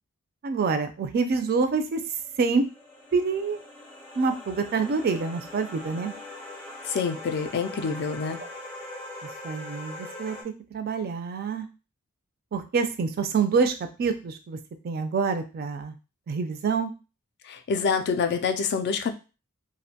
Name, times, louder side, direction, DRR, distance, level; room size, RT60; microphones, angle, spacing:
voice 1, 0.4-2.0 2.4-2.7 3.1-3.6 4.2-6.1 9.4-10.4 10.7-11.7 12.5-13.7 14.0-14.6 14.8-16.0 16.3-16.9, right 4 dB, 45° right, 8 dB, 0.3 m, -26 dB
sound 1, 2.0-10.4, left 2 dB, 5° left, 0.6 m, -42 dB
voice 2, 6.8-8.4 17.5-19.1, left 5 dB, 50° left, 7 dB, 0.3 m, -27 dB
2.5 x 2.1 x 2.7 m, 0.31 s
head